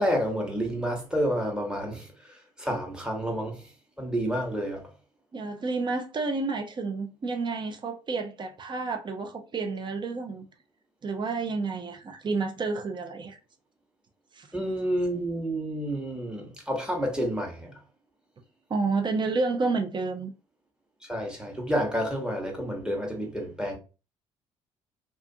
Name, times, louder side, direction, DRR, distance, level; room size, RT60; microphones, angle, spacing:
voice 1, 0.0-3.6 4.0-4.9 14.5-17.7 21.0-23.8, equal, 5° right, 1.1 m, -29 dB
voice 2, 5.3-10.5 11.0-13.4 14.3-14.5 18.7-20.3, right 3 dB, 30° right, 0.6 m, -30 dB
2.4 x 2.4 x 2.6 m
figure-of-eight pair, 50°, 15 cm